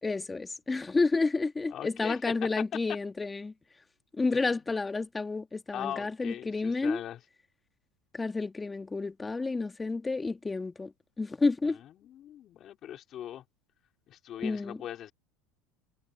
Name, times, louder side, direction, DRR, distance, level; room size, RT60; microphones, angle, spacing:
voice 1, 0.0-3.5 4.2-7.0 8.1-10.9 11.2-11.8 14.4-14.8, left 3 dB, 15° left, 1.8 m, -30 dB
voice 2, 1.7-2.2 4.3-4.6 5.7-7.2 11.6-13.4 14.1-15.1, left 11 dB, 45° left, 4.4 m, -41 dB
supercardioid pair, 105°, 0 cm